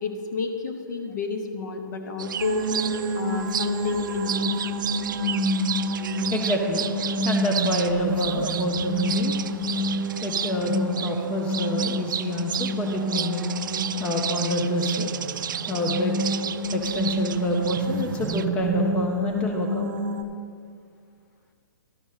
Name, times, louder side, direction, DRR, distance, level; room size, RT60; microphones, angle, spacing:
voice 1, 0.0-2.7 3.1-4.5, left 4 dB, 60° left, 5 dB, 1.2 m, -30 dB
sound 1, 2.2-18.4, right 8 dB, 70° right, 0.4 m, -33 dB
sound 2, 2.4-20.2, right 1 dB, 35° right, 0.6 m, -28 dB
voice 2, 6.3-6.8 7.2-9.3 10.2-13.5 14.0-15.1 15.7-16.2 16.7-19.9, left 2 dB, 10° left, 2 dB, 0.5 m, -28 dB
12.0 x 5.3 x 6.4 m, 2.2 s
hypercardioid pair, 160°, 11 cm